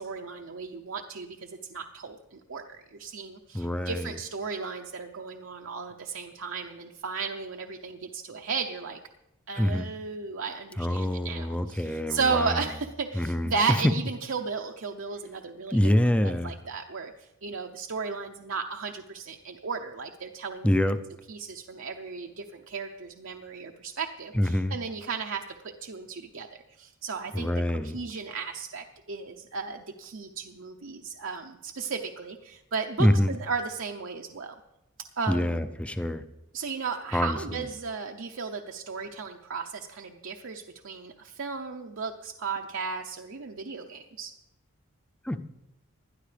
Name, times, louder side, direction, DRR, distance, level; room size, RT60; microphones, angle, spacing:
voice 1, 0.0-9.0 9.5-20.7 21.3-25.5 25.8-26.5 26.8-34.5 35.2-35.6 36.5-44.3, right 5 dB, 65° right, 3 dB, 0.7 m, -35 dB
voice 2, 3.5-4.1 9.6-9.9 10.8-12.5 13.1-13.5 15.7-16.5 20.6-21.0 24.3-24.8 27.3-28.0 33.0-33.3 35.3-36.2 37.1-37.6 45.3-45.4, left 1 dB, 5° left, 10 dB, 0.4 m, -25 dB
20.0 x 12.5 x 3.4 m, 0.94 s
head